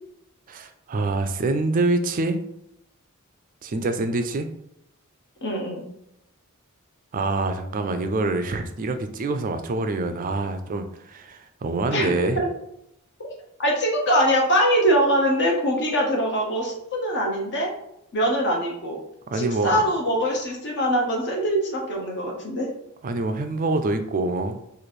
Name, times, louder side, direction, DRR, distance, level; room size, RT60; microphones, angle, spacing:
voice 1, 0.5-2.4 3.6-4.5 7.1-12.4 19.3-19.8 23.0-24.6, right 2 dB, 35° right, 7 dB, 0.4 m, -25 dB
voice 2, 5.4-5.8 11.9-12.5 13.2-13.3 13.6-17.7 18.1-19.0 19.3-22.7, equal, 50° left, -1 dB, 0.9 m, -23 dB
3.2 x 2.5 x 4.1 m, 0.81 s
head